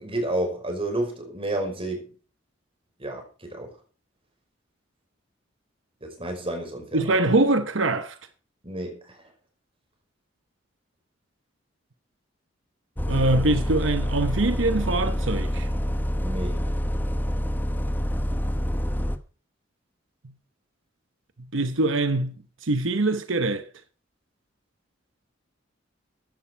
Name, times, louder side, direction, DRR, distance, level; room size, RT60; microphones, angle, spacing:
voice 1, 0.0-2.1 3.0-3.7 6.0-7.3 8.6-9.2 16.2-16.7, right 1 dB, 30° right, 5.4 m, -31 dB
voice 2, 6.9-8.2 13.1-15.7 20.2-20.3 21.5-22.4 22.6-23.7, right 2 dB, 80° right, 1.0 m, -23 dB
Bus, 13.0-19.2, equal, 10° left, 1.1 m, -27 dB
15.0 x 11.5 x 4.6 m
head